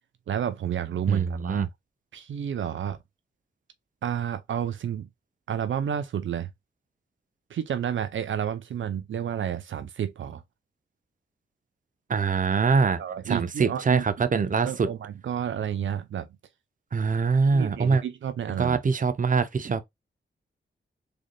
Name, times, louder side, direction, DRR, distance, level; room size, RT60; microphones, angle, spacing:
voice 1, 0.3-1.7 2.1-3.0 4.0-5.1 5.5-6.5 7.5-10.4 13.0-14.0 14.3-16.3 17.5-18.8, right 9 dB, 80° right, 0.6 m, -31 dB
voice 2, 1.1-1.7 12.1-13.0 13.3-14.9 16.9-18.0 18.6-19.8, right 5 dB, 45° right, 0.7 m, -23 dB
3.8 x 3.4 x 2.2 m
cardioid pair, 65°, 20 cm